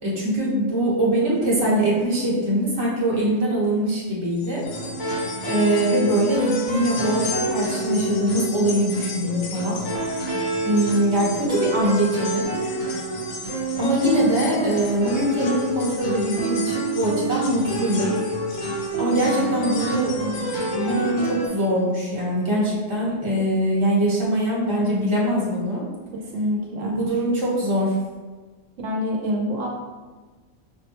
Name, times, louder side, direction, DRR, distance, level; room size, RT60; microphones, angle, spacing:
voice 1, 0.0-4.6 5.5-9.8 10.6-12.5 13.8-18.1 19.0-20.1 20.7-25.8 26.8-27.9, right 1 dB, 25° right, -6 dB, 1.0 m, -22 dB
sound 1, 4.3-21.6 22.0-22.1 23.2-23.3, left 4 dB, 60° left, 0.7 m, -38 dB
sound 2, 4.6-21.5, right 2 dB, 40° left, 1.4 m, -28 dB
voice 2, 20.2-20.5 26.3-27.0 28.8-29.7, equal, 75° right, -2 dB, 1.0 m, -26 dB
5.4 x 2.2 x 2.9 m, 1.3 s
omnidirectional pair, 1.3 m